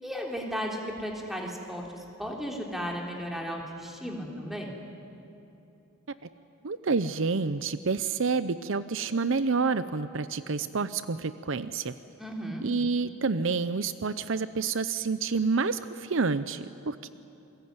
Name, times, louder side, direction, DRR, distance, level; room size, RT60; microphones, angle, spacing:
voice 1, 0.0-4.8 12.2-12.6, equal, ahead, 0 dB, 3.4 m, -35 dB
voice 2, 6.6-11.9 12.6-17.1, right 4 dB, 60° right, 13 dB, 0.7 m, -28 dB
28.0 x 22.0 x 9.7 m, 2.8 s
head